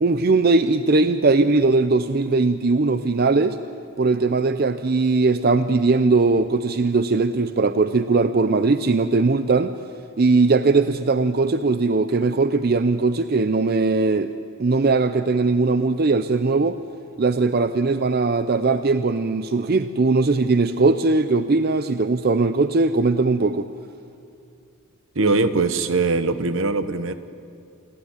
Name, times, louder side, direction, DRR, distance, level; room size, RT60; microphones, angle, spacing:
voice 1, 0.0-3.6 4.0-9.7 10.2-14.3 14.6-16.8 17.2-23.7, right 3 dB, 45° right, 11 dB, 0.5 m, -19 dB
voice 2, 25.1-27.1, right 3 dB, 65° right, 11 dB, 1.0 m, -21 dB
28.0 x 12.0 x 9.7 m, 2.6 s
head